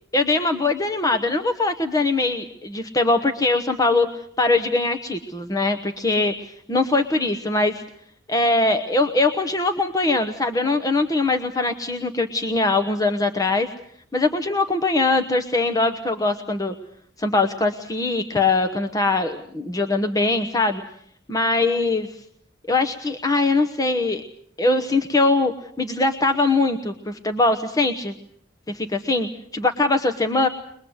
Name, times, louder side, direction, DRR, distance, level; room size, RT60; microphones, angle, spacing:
voice 1, 0.1-4.1 4.4-7.8 8.3-13.7 14.1-16.7 17.2-20.8 21.3-22.1 22.7-24.2 24.6-25.5 25.8-28.1 28.7-30.5, left 2 dB, 20° left, 6 dB, 1.0 m, -22 dB
23.0 x 21.5 x 8.0 m, 0.66 s
head